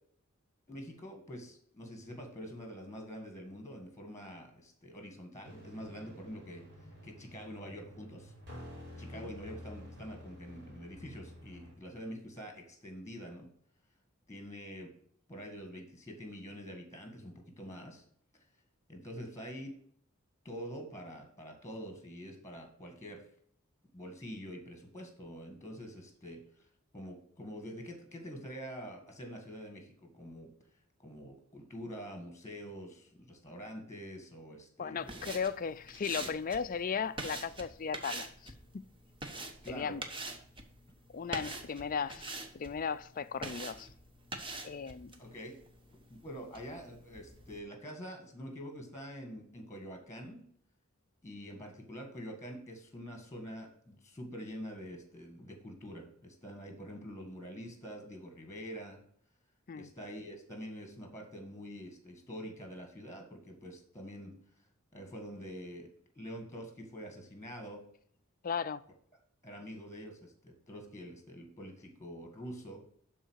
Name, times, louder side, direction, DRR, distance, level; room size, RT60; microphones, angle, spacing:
voice 1, 0.7-6.7 7.0-8.3 9.0-13.5 14.3-14.9 15.3-18.0 18.9-19.7 20.5-23.2 23.9-26.7 26.9-30.5 31.0-35.3 36.2-36.3 39.6-40.0 45.2-45.5 46.1-50.4 51.2-59.0 59.7-64.4 64.9-65.9 66.2-67.8 69.4-72.8, equal, 15° left, 1.8 m, -46 dB
sound 1, 5.4-11.7, left 1 dB, 50° right, 3.8 m, -50 dB
voice 2, 34.8-38.8 39.7-40.0 41.1-42.3 42.5-43.9 44.6-45.2 59.7-59.9 68.4-68.8, left 6 dB, 40° left, 0.4 m, -36 dB
sound 2, 35.0-47.6, right 2 dB, 25° right, 1.0 m, -45 dB
12.0 x 4.0 x 6.4 m
head